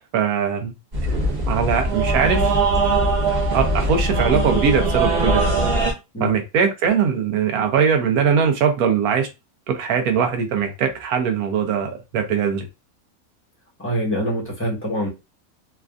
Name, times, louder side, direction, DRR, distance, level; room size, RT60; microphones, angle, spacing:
voice 1, 0.1-0.7 1.5-2.9 3.3-5.6 6.2-9.3 9.7-12.6, right 7 dB, 80° right, 1.1 m, -21 dB
sound 1, 0.9-5.9, right 2 dB, 35° right, 0.8 m, -20 dB
voice 2, 13.8-15.1, equal, 10° left, 1.0 m, -24 dB
3.3 x 2.4 x 2.4 m
omnidirectional pair, 1.6 m